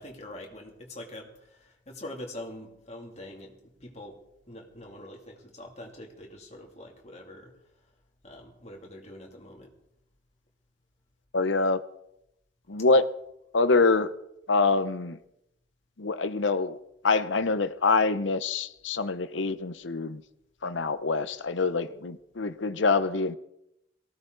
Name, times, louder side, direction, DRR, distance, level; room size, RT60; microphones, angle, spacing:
voice 1, 0.0-4.2 4.5-7.5 8.2-9.7, left 1 dB, 35° left, 1 dB, 2.8 m, -44 dB
voice 2, 11.3-11.8 12.7-13.0 13.5-14.1 14.5-15.2 16.0-16.8 17.0-20.2 20.6-23.3, left 3 dB, 80° left, 13 dB, 0.8 m, -25 dB
18.5 x 16.0 x 4.0 m, 0.82 s
head